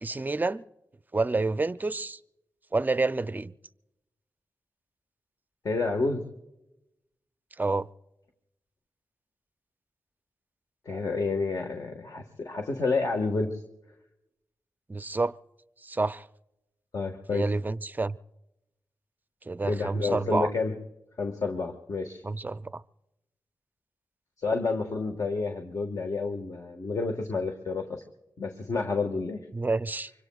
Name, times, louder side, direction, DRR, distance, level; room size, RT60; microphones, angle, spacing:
voice 1, 0.0-0.6 1.1-2.2 2.7-3.5 7.6-7.9 14.9-15.3 15.8-16.3 17.3-18.2 19.5-20.5 22.2-22.8 29.5-30.1, right 3 dB, 25° right, 0.5 m, -28 dB
voice 2, 5.6-6.2 10.8-13.6 16.9-17.5 19.7-20.7 21.2-22.2 24.4-28.0 28.4-29.4, left 3 dB, 60° left, 1.6 m, -29 dB
25.0 x 24.5 x 2.4 m
cardioid pair, 65°, 7 cm